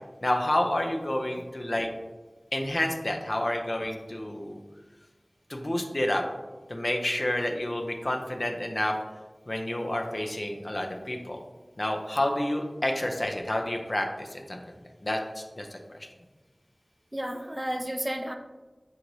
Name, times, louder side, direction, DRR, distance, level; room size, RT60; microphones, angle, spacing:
voice 1, 0.2-1.9 2.5-4.6 5.5-6.2 6.7-8.9 9.5-11.4 11.8-14.6 15.0-16.1, left 1 dB, 50° left, 3 dB, 0.5 m, -29 dB
voice 2, 17.1-18.3, equal, 15° right, 5 dB, 0.3 m, -32 dB
6.2 x 2.9 x 2.6 m, 1.2 s
wide cardioid pair, 45°, 0 cm